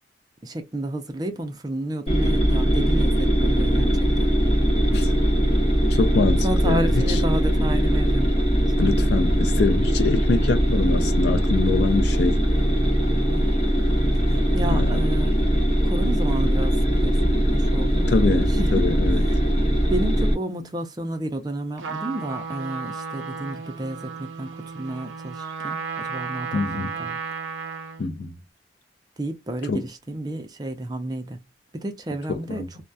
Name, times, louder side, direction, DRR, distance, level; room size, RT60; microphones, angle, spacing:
voice 1, 0.4-4.3 6.4-8.3 8.8-9.0 13.3-13.6 14.3-15.5 15.8-18.8 19.1-19.4 19.9-27.2 29.2-31.4 31.7-32.7, right 1 dB, 20° right, 0.4 m, -31 dB
sound 1, 2.1-20.3, equal, 35° left, 0.9 m, -20 dB
voice 2, 5.9-7.2 8.8-12.4 14.7-14.9 18.1-19.2 26.5-27.0 28.0-28.3 29.7-29.9 32.3-32.7, left 3 dB, 60° left, 0.4 m, -24 dB
Bowed string instrument, 11.4-15.8, equal, 5° left, 0.8 m, -41 dB
Trumpet, 21.8-28.1, right 5 dB, 90° right, 0.6 m, -33 dB
2.3 x 2.1 x 2.6 m
head